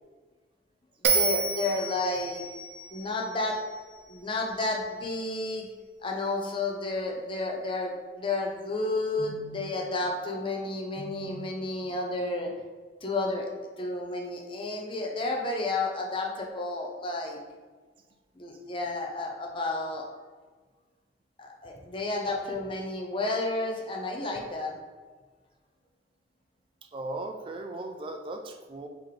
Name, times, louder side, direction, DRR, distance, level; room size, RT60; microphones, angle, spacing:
Bell, 1.0-4.3, right 5 dB, 75° right, 0.6 m, -30 dB
voice 1, 1.1-2.4 2.9-3.6 4.1-5.7 6.0-12.5 13.0-13.5 13.8-17.4 18.4-20.1 21.4-24.7, left 2 dB, 30° left, 0 dB, 0.6 m, -31 dB
voice 2, 26.9-28.9, right 2 dB, 30° right, 5 dB, 0.3 m, -37 dB
3.9 x 3.0 x 3.2 m, 1.4 s
head